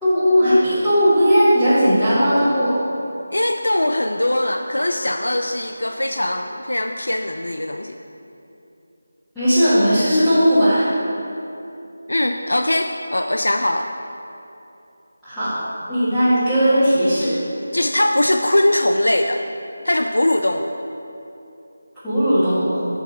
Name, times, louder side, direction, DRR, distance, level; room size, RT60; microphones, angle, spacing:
voice 1, 0.0-2.8 9.3-10.9 15.2-15.5 15.9-17.3 22.0-22.8, equal, 5° left, -21 dB, 1.6 m, -17 dB
voice 2, 3.3-8.0 12.1-13.9 17.7-19.4 19.8-20.7, left 1 dB, 80° left, 5 dB, 0.3 m, -21 dB
5.9 x 4.6 x 5.8 m, 2.8 s
figure-of-eight pair, 165°, 0 cm